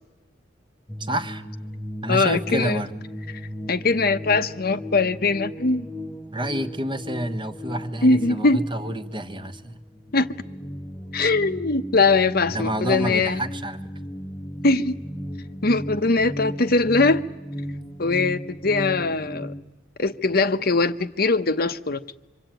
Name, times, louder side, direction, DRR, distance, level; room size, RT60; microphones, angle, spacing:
sound 1, 0.9-19.6, equal, 10° left, 1.0 m, -36 dB
voice 1, 1.0-1.4 2.0-2.9 6.3-9.8 12.5-13.8, right 1 dB, 25° right, 1.3 m, -28 dB
voice 2, 2.1-2.8 3.7-5.9 8.0-8.6 10.1-10.3 11.1-13.4 14.6-14.9 15.6-17.2 18.0-19.5 20.0-22.0, left 3 dB, 55° left, 0.9 m, -21 dB
25.5 x 25.5 x 9.1 m
head